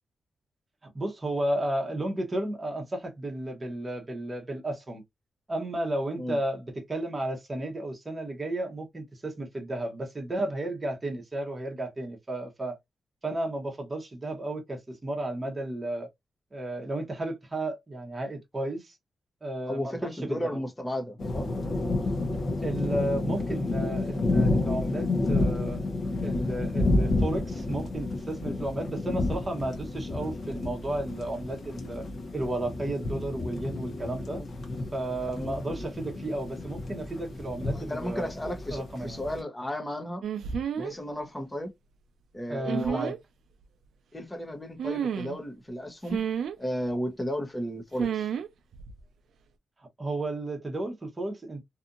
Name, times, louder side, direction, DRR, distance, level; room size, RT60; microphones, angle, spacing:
voice 1, 0.9-5.0 5.5-12.8 13.2-16.1 16.5-19.0 19.4-20.6 22.6-25.8 26.2-32.0 32.3-34.4 34.9-38.3 38.7-39.2 42.5-43.1 50.0-51.7, right 1 dB, 20° right, 0.9 m, -33 dB
voice 2, 19.7-21.5 34.4-34.5 35.4-35.6 37.7-40.2 40.7-41.7 42.3-43.1 44.1-46.2 46.6-48.3, equal, 15° left, 0.7 m, -34 dB
sound 1, 21.2-39.4, left 2 dB, 50° left, 0.9 m, -30 dB
sound 2, 40.2-41.0 42.6-43.2 44.8-45.4 46.1-46.6 48.0-48.5 48.7-49.0, right 8 dB, 90° right, 0.4 m, -30 dB
2.7 x 2.5 x 2.4 m
wide cardioid pair, 160°, 0 cm